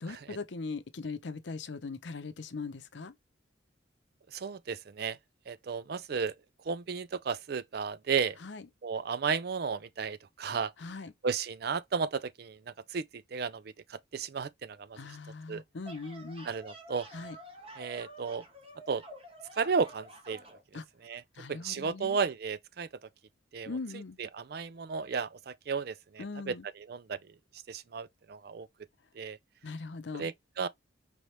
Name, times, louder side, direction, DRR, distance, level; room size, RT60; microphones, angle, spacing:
voice 1, 0.0-3.1 8.4-8.6 10.8-11.1 15.0-16.5 17.1-17.4 20.7-20.8 21.4-22.2 23.7-24.2 26.2-26.6 29.6-30.3, left 3 dB, 70° left, 0.7 m, -40 dB
voice 2, 4.3-5.2 5.5-6.3 6.6-8.4 8.8-10.7 11.2-15.0 15.5-15.6 16.4-17.1 17.8-18.4 18.9-19.0 19.6-20.4 21.0-21.2 21.5-22.9 23.5-27.2 27.7-28.7 29.1-29.4 30.1-30.7, right 5 dB, 55° right, 0.4 m, -34 dB
sound 1, 15.6-20.6, right 1 dB, 30° right, 1.2 m, -50 dB
5.2 x 3.2 x 3.0 m
head